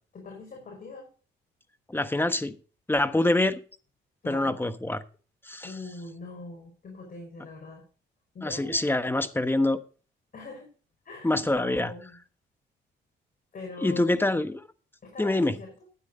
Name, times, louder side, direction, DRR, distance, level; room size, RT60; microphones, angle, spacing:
voice 1, 0.1-1.1 3.1-3.3 4.2-4.6 5.6-7.8 8.3-8.8 10.3-10.7 11.0-12.2 13.5-14.1 15.0-15.7, left 3 dB, 45° left, 5.1 m, -42 dB
voice 2, 1.9-2.6 2.9-3.5 4.3-5.0 5.5-5.7 8.4-9.8 11.2-11.9 13.8-14.6 15.2-15.5, left 2 dB, 10° left, 1.2 m, -25 dB
12.5 x 9.7 x 4.0 m
cardioid pair, 90°, 20 cm